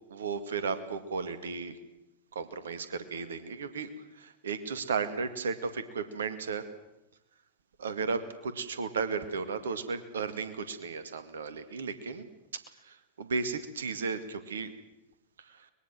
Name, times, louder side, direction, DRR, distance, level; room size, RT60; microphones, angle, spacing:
voice 1, 0.1-1.8 2.3-6.6 7.8-12.3 12.8-14.7 15.4-15.7, right 5 dB, 65° right, 12 dB, 2.1 m, -34 dB
23.5 x 21.5 x 7.7 m, 0.90 s
figure-of-eight pair, 90°, 0 cm